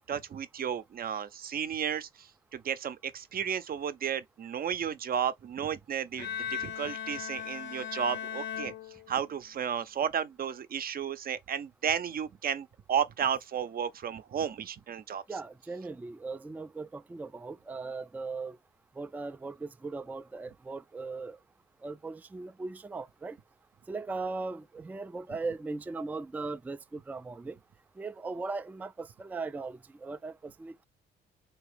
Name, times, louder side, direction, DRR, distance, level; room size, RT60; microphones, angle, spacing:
voice 1, 0.0-8.7 9.1-15.2, right 8 dB, 50° right, 0.6 m, -33 dB
Bowed string instrument, 6.2-9.5, left 9 dB, 70° left, 0.7 m, -38 dB
voice 2, 15.3-18.6 19.0-21.4 21.8-23.4 23.9-27.6 28.0-30.9, right 3 dB, 10° right, 0.3 m, -38 dB
3.5 x 2.9 x 3.3 m
cardioid pair, 90°, 20 cm